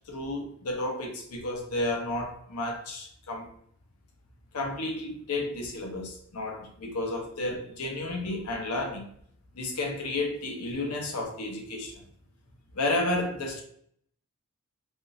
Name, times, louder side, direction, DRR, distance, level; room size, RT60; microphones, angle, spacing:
voice 1, 0.1-3.5 4.5-9.1 9.5-11.9 12.7-13.6, left 2 dB, 80° left, 0.7 m, -32 dB
3.5 x 2.3 x 2.6 m
head